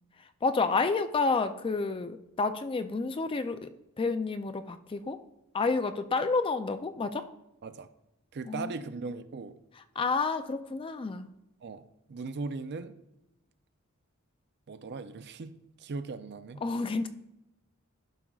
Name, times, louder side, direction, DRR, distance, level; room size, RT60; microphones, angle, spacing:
voice 1, 0.4-3.7 4.0-5.2 5.5-7.3 8.5-8.7 10.0-11.3 16.6-17.1, left 4 dB, 25° left, 0.3 m, -29 dB
voice 2, 8.3-9.6 11.6-11.8 12.1-12.9 14.7-16.6, right 4 dB, 50° right, 0.4 m, -38 dB
12.5 x 6.0 x 2.3 m
head